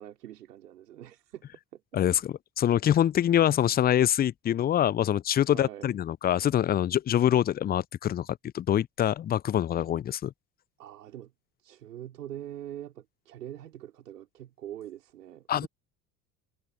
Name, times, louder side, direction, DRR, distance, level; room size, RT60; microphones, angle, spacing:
voice 1, 0.0-1.4 1.7-1.8 5.5-5.9 10.8-11.3 11.6-15.7, right 11 dB, 75° right, 3.8 m, -43 dB
voice 2, 1.9-8.3 8.5-10.3 15.5-15.7, left 11 dB, 20° left, 0.5 m, -25 dB
figure-of-eight pair, 60°, 47 cm